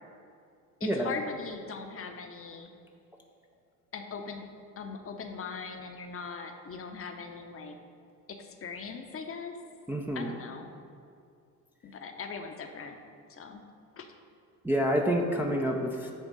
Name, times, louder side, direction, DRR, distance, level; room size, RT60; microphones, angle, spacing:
voice 1, 0.8-2.7 3.9-4.5 4.8-7.8 8.3-9.6 10.1-10.7 11.8-13.0 13.3-13.6 14.0-14.1, left 5 dB, 30° left, 5 dB, 0.8 m, -40 dB
voice 2, 9.9-10.3 14.6-16.1, equal, 5° right, 0 dB, 0.5 m, -28 dB
9.0 x 3.4 x 5.3 m, 2.4 s
figure-of-eight pair, 60°, 48 cm